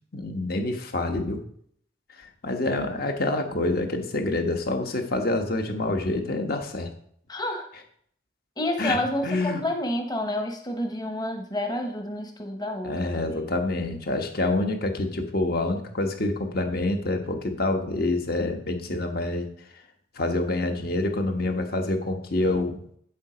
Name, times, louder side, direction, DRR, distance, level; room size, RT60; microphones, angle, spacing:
voice 1, 0.1-1.4 2.1-6.9 8.8-9.0 9.2-9.6 12.8-19.5 19.7-19.8 20.1-22.8, left 2 dB, 55° left, 5 dB, 1.3 m, -27 dB
voice 2, 7.3-7.7 8.6-13.5, left 1 dB, 20° left, 4 dB, 1.0 m, -29 dB
8.5 x 7.4 x 5.0 m, 0.64 s
head